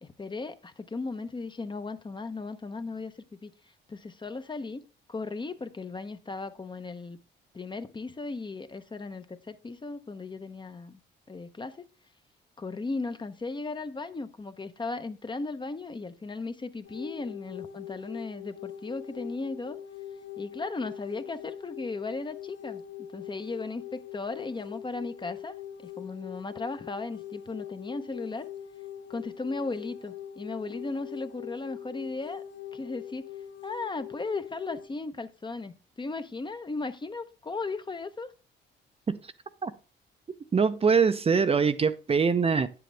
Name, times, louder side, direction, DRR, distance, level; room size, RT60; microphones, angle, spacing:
voice 1, 0.0-3.1 3.4-3.5 3.9-4.8 5.1-7.2 7.5-11.0 11.3-11.8 12.6-19.8 20.4-22.8 23.1-28.5 29.1-32.4 32.7-33.3 33.6-38.3, left 3 dB, 25° left, 0.8 m, -36 dB
sound 1, 16.8-34.9, left 10 dB, 70° left, 1.8 m, -42 dB
voice 2, 40.5-42.7, right 5 dB, 30° right, 0.6 m, -23 dB
9.0 x 7.8 x 3.4 m
cardioid pair, 90°, 20 cm